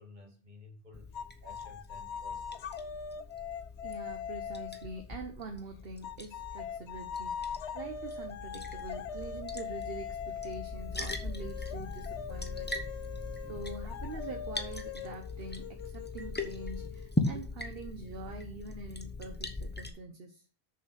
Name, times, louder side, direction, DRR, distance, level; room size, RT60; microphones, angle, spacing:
voice 1, 0.0-2.9, left 2 dB, 45° right, 2.1 m, -54 dB
Liquid, 0.9-19.9, left 2 dB, 10° left, 1.0 m, -40 dB
sound 1, 1.1-5.1 6.0-17.3, left 7 dB, 80° left, 1.0 m, -42 dB
voice 2, 3.8-12.8 13.5-20.5, right 3 dB, 60° right, 1.2 m, -45 dB
6.9 x 6.0 x 6.4 m
omnidirectional pair, 1.1 m